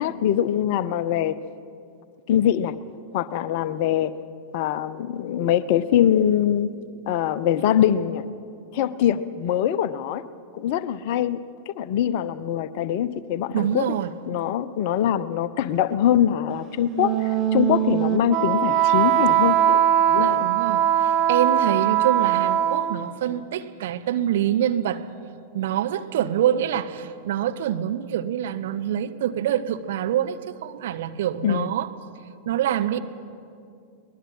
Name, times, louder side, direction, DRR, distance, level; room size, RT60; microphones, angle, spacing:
voice 1, 0.0-1.4 2.3-2.7 3.1-4.1 4.5-6.7 7.1-8.2 8.7-10.2 10.5-13.9 14.3-19.8 20.1-20.5 31.4-31.7, left 10 dB, 50° left, 15 dB, 0.7 m, -23 dB
voice 2, 13.5-14.1 20.2-25.1 25.5-31.9 32.5-33.0, right 10 dB, 55° right, 9 dB, 0.9 m, -25 dB
Wind instrument woodwind instrument, 16.9-23.1, right 11 dB, 30° right, 1.2 m, -21 dB
23.5 x 19.5 x 5.7 m, 2.4 s
figure-of-eight pair, 90°, 0 cm